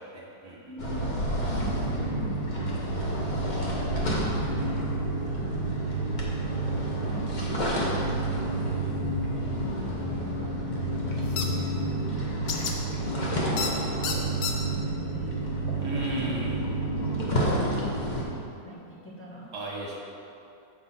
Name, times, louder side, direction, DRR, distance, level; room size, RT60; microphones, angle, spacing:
voice 1, 0.1-0.6 15.8-16.6 19.5-20.0, right 1 dB, 70° right, -4 dB, 2.0 m, -34 dB
voice 2, 0.7-1.1 1.4-4.2 4.5-4.8 5.3-6.0 7.1-15.4 16.8-19.5, equal, 10° left, -7 dB, 1.2 m, -43 dB
sound 1, 0.8-18.2, right 1 dB, 30° left, 1.0 m, -29 dB
sound 2, 11.4-11.5 12.5-12.7 13.6-13.7 14.0-14.5, left 7 dB, 80° left, 1.3 m, -29 dB
7.8 x 4.9 x 5.9 m, 2.7 s
omnidirectional pair, 1.8 m